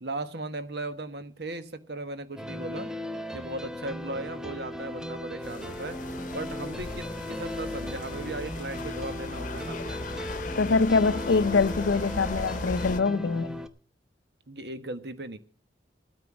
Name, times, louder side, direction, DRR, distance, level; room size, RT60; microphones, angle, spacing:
voice 1, 0.0-2.9 3.3-6.0 6.3-9.8 14.5-15.4, right 2 dB, 60° right, 1.4 m, -37 dB
sound 1, 2.4-13.7, left 1 dB, 5° right, 0.8 m, -37 dB
sound 2, 5.4-13.0, left 2 dB, 45° left, 0.9 m, -37 dB
voice 2, 10.6-13.6, left 4 dB, 80° left, 0.6 m, -24 dB
14.5 x 9.4 x 6.2 m
head